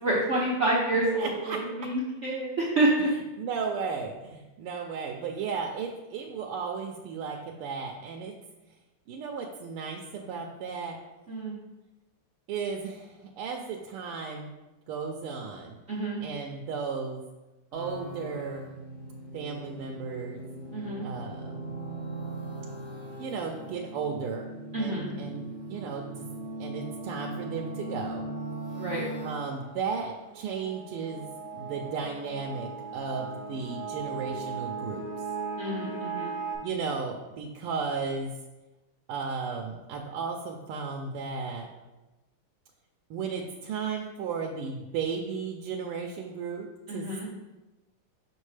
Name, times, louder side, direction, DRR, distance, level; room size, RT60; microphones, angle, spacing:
voice 1, 0.0-3.1 11.3-11.5 15.9-16.2 20.7-21.0 24.7-25.1 28.8-29.0 35.6-36.3 46.9-47.3, right 2 dB, 70° right, -4 dB, 0.6 m, -28 dB
voice 2, 1.2-1.6 3.4-8.3 9.1-11.0 12.5-14.5 14.9-15.8 16.2-17.2 17.7-18.7 19.3-20.4 21.0-21.7 23.2-26.3 26.6-28.3 29.2-31.3 31.5-35.0 36.6-38.3 39.1-41.7 43.1-46.7 46.9-47.3, right 5 dB, 90° right, 1 dB, 1.5 m, -35 dB
sound 1, 17.7-36.6, right 3 dB, 35° left, 2.5 m, -38 dB
5.8 x 5.3 x 3.2 m, 1.1 s
omnidirectional pair, 2.4 m